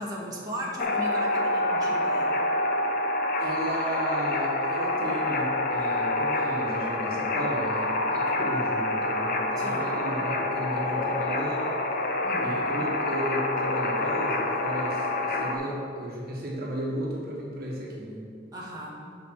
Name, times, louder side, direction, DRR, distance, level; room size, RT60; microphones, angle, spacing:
voice 1, 0.0-2.4 9.6-10.0 12.2-12.7 18.5-19.0, equal, 20° right, -4 dB, 1.6 m, -37 dB
sound 1, 0.8-15.5, left 2 dB, 50° left, 0.9 m, -27 dB
voice 2, 3.4-11.8 12.4-18.2, right 1 dB, 55° right, -2 dB, 1.4 m, -34 dB
12.0 x 5.3 x 4.7 m, 2.4 s
head